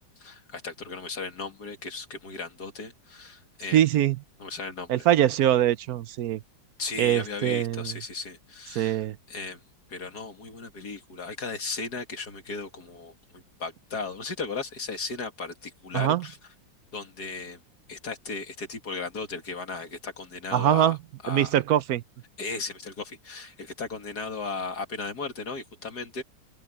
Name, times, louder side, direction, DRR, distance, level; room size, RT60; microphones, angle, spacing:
voice 1, 0.2-3.8 4.4-5.1 6.8-9.0 9.3-9.6 9.9-16.4 16.9-17.6 17.9-21.0 21.2-21.5 22.4-26.2, left 4 dB, 60° left, 2.7 m, -36 dB
voice 2, 3.7-4.2 4.9-6.4 7.0-7.9 8.7-9.2 15.9-16.2 20.5-21.0 21.3-22.0, right 11 dB, 65° right, 1.0 m, -23 dB
open air
omnidirectional pair, 2.0 m